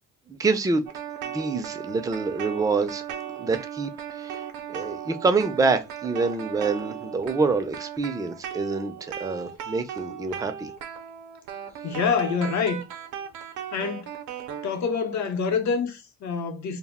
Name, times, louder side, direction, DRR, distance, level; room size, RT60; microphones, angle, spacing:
voice 1, 0.3-0.9 1.2-3.0 3.4-10.7, right 4 dB, 10° right, 0.3 m, -26 dB
sound 1, 0.9-14.7, right 9 dB, 80° right, 0.5 m, -37 dB
voice 2, 11.8-12.8 13.7-14.1 14.6-16.8, left 5 dB, 65° left, 0.7 m, -26 dB
2.1 x 2.0 x 3.4 m
cardioid pair, 90°, 30 cm